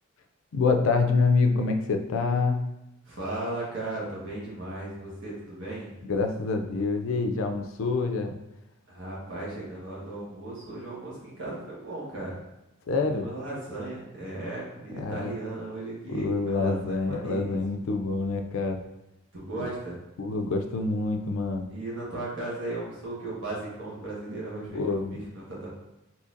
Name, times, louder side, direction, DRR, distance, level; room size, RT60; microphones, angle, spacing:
voice 1, 0.5-2.7 6.0-8.4 12.9-13.3 14.9-15.3 16.1-18.8 20.2-21.7 24.7-25.2, left 3 dB, 65° left, 5 dB, 0.4 m, -26 dB
voice 2, 3.0-5.9 8.9-12.4 12.9-17.6 19.3-20.0 21.7-25.7, right 2 dB, 60° right, -6 dB, 1.3 m, -36 dB
3.8 x 2.8 x 2.5 m, 0.92 s
head